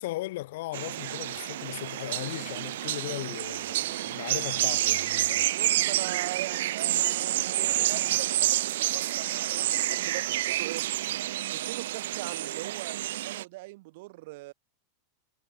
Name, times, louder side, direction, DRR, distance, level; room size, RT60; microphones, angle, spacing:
voice 1, 0.0-5.5, left 17 dB, 50° left, 1.6 m, -37 dB
sound 1, 0.7-13.4, right 14 dB, 65° right, 0.4 m, -29 dB
voice 2, 5.4-10.8 11.5-14.5, right 21 dB, 45° right, 3.3 m, -41 dB
supercardioid pair, 180°, 0 cm